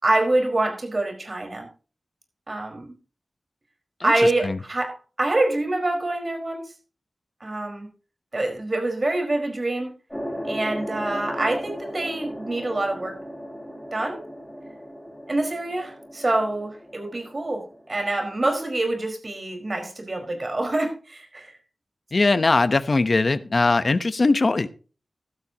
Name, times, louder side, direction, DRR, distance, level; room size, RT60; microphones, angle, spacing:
voice 1, 0.0-1.7 2.5-2.9 4.0-6.7 7.4-7.9 8.3-9.9 10.4-13.1 13.9-14.2 15.3-21.5, right 2 dB, 45° right, 4.9 m, -25 dB
sound 1, 10.1-18.8, equal, 5° left, 5.2 m, -37 dB
voice 2, 22.1-24.7, left 3 dB, 55° left, 0.9 m, -20 dB
15.5 x 12.5 x 2.9 m
wide cardioid pair, 60°, 0 cm